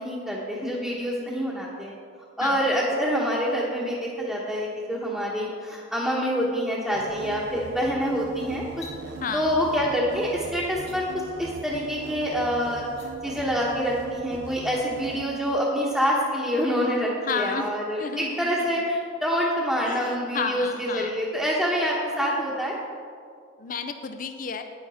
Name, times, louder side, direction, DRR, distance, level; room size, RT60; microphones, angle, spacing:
voice 1, 0.0-1.9 2.4-8.7 9.3-11.1 11.4-12.9 13.2-22.7, equal, ahead, -8 dB, 1.0 m, -26 dB
sound 1, 6.9-15.2, right 4 dB, 60° right, 0.5 m, -41 dB
sound 2, 8.7-9.0 10.7-11.0 12.8-13.1, left 5 dB, 70° left, 2.1 m, -45 dB
voice 2, 9.2-9.6 17.2-17.7 18.0-18.7 19.9-21.2 23.6-24.6, left 5 dB, 45° left, 7 dB, 0.5 m, -32 dB
9.6 x 9.4 x 4.2 m, 2.2 s
head